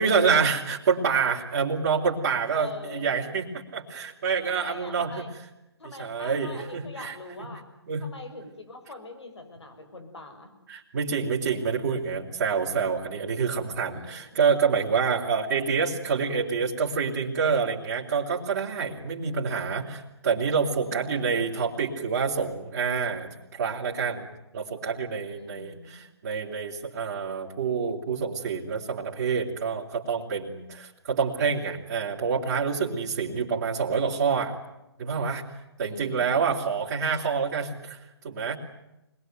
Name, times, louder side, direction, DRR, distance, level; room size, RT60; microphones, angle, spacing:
voice 1, 0.0-5.3 5.8-7.5 7.9-8.1 10.7-24.3 24.5-34.5 35.0-35.4 35.8-38.6, right 5 dB, 40° right, -6 dB, 3.7 m, -27 dB
voice 2, 2.5-3.1 4.4-5.3 5.8-7.6 8.0-10.5 13.9-14.4 20.8-21.6 25.3-26.0 35.8-36.5, left 3 dB, 85° left, 7 dB, 6.7 m, -43 dB
26.0 x 21.5 x 9.4 m, 0.92 s
hypercardioid pair, 155°, 14 cm